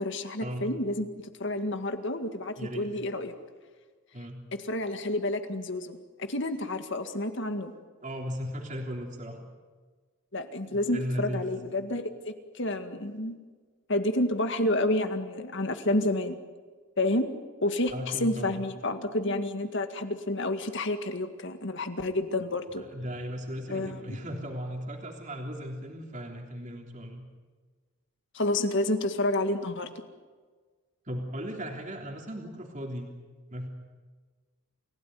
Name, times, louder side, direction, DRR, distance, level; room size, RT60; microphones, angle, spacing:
voice 1, 0.0-3.3 4.7-7.7 10.3-13.3 13.9-16.4 17.0-17.3 17.6-22.8 23.7-24.2 28.3-29.9, left 1 dB, 55° left, 8 dB, 2.0 m, -29 dB
voice 2, 2.6-2.9 4.1-4.4 8.0-9.4 10.6-11.5 17.9-18.6 22.8-27.2 31.1-33.1 33.5-33.7, equal, 35° right, 1 dB, 3.4 m, -36 dB
29.5 x 17.0 x 9.4 m, 1.5 s
head